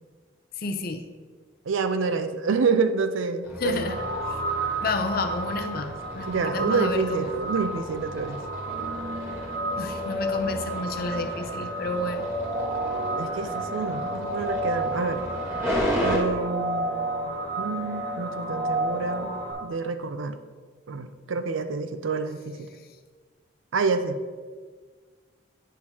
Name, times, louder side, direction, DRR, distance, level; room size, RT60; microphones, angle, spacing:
voice 1, 0.6-1.1 3.6-4.0 4.8-7.6 9.8-12.3, left 2 dB, 50° left, 7 dB, 0.6 m, -30 dB
voice 2, 1.7-3.9 6.3-8.4 13.2-15.2 16.0-19.3 19.6-20.4 20.9-22.7 23.7-24.2, right 4 dB, 85° right, 10 dB, 0.5 m, -28 dB
sound 1, 3.4-16.2, equal, 15° right, 1.2 m, -35 dB
sound 2, 3.7-19.5, right 1 dB, 55° right, 1.3 m, -31 dB
9.1 x 6.3 x 2.8 m, 1.5 s
head